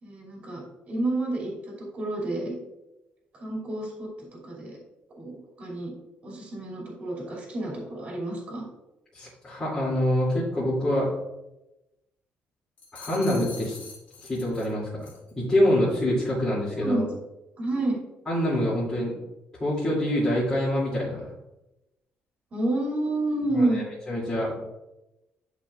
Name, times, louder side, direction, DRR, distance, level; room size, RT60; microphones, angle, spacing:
voice 1, 0.0-2.5 3.3-4.8 5.2-5.3 5.6-5.9 6.2-8.6 16.8-17.1 17.6-18.0 22.5-23.8, right 2 dB, 35° right, -2 dB, 2.6 m, -29 dB
voice 2, 9.1-11.1 12.9-13.8 14.2-15.0 15.3-17.0 18.3-19.1 19.5-21.3 23.5-24.5, left 1 dB, 20° left, -11 dB, 2.7 m, -25 dB
sound 1, 12.8-14.7 15.0-15.3, left 5 dB, 45° left, 1.9 m, -44 dB
11.0 x 5.3 x 2.5 m, 0.94 s
cardioid pair, 175°, 4 cm